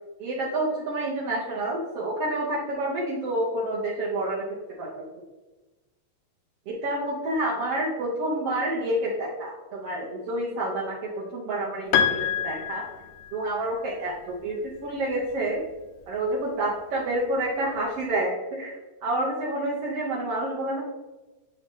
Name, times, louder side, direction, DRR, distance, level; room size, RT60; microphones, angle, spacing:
voice 1, 0.2-4.9 6.7-12.9 13.3-15.6 16.1-20.8, right 1 dB, 80° right, -5 dB, 1.3 m, -29 dB
Piano, 11.9-13.6, left 8 dB, 85° left, 2.4 m, -26 dB
8.8 x 3.8 x 3.6 m, 1.1 s
omnidirectional pair, 4.2 m